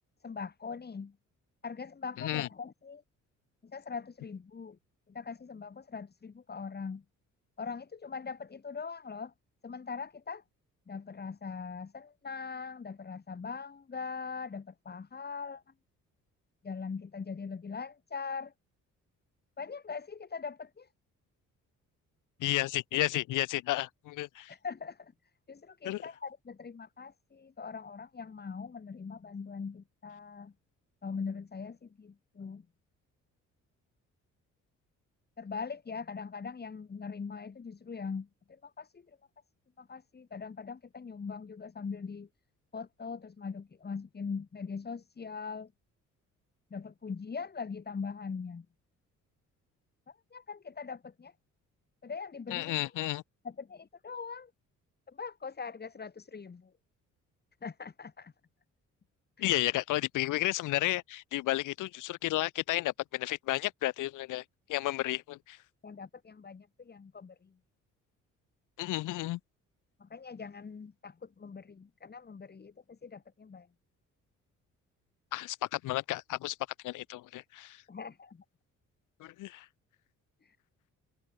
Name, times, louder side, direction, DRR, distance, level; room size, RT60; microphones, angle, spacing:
voice 1, 0.2-1.2 1.6-3.0 3.6-4.8 5.1-7.0 7.6-9.3 9.6-10.4 10.9-15.6 16.6-18.5 19.6-20.9 24.5-25.1 25.5-30.5 31.0-32.7 35.4-39.1 39.8-42.3 42.7-45.7 46.7-48.7 50.1-51.3 52.0-52.8 53.4-54.5 55.1-56.7 57.6-58.3 59.4-59.5 65.8-67.5 70.0-73.7 77.9-78.4 80.4-80.6, left 5 dB, 35° left, 2.8 m, -41 dB
voice 2, 2.2-2.5 22.4-24.5 25.8-26.0 52.5-53.2 59.4-64.4 64.7-65.6 68.8-69.4 75.3-76.6 76.8-77.8 79.2-79.7, left 17 dB, 85° left, 0.9 m, -32 dB
cardioid pair, 90°, 30 cm